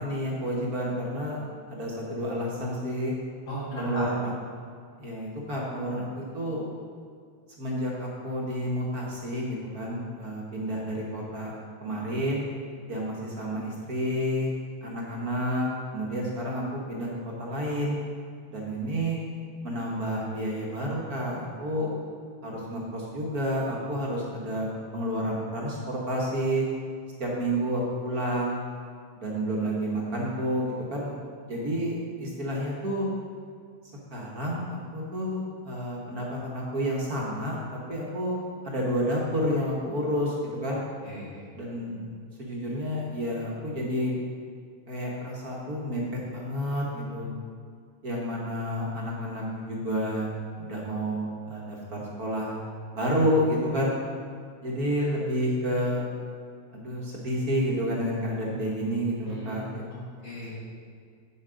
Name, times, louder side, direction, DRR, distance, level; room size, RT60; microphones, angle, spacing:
voice 1, 0.0-1.4 1.7-3.1 3.8-4.3 5.0-6.6 7.6-11.5 11.8-12.4 12.9-14.5 14.8-18.0 18.5-19.2 19.6-21.9 22.4-24.7 24.9-26.6 27.2-28.6 29.2-31.2 31.4-33.1 34.1-38.4 38.6-40.8 41.6-42.0 42.4-44.2 44.9-47.3 48.0-50.3 50.6-52.6 52.9-53.9 54.6-56.1 56.7-59.8, equal, 50° right, -3 dB, 1.7 m, -30 dB
voice 2, 3.5-4.0 41.0-41.5 59.3-59.7 60.2-60.6, equal, 65° left, -7 dB, 3.3 m, -36 dB
8.2 x 7.2 x 5.0 m, 2.2 s
omnidirectional pair, 2.3 m